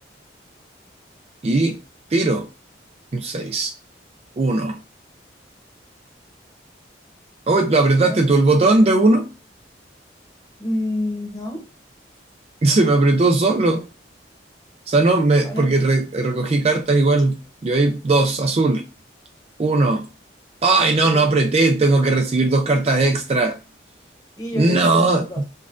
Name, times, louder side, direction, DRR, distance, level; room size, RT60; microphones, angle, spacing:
voice 1, 1.4-1.8 2.1-2.5 3.1-3.7 4.4-4.8 7.5-9.3 12.6-13.8 14.9-18.8 19.6-20.1 20.6-23.6 24.6-25.4, right 2 dB, 35° right, 0.3 m, -18 dB
voice 2, 10.6-11.6 15.4-15.7 21.1-21.3 24.4-25.4, left 1 dB, 20° left, 0.9 m, -28 dB
5.2 x 2.4 x 2.4 m
head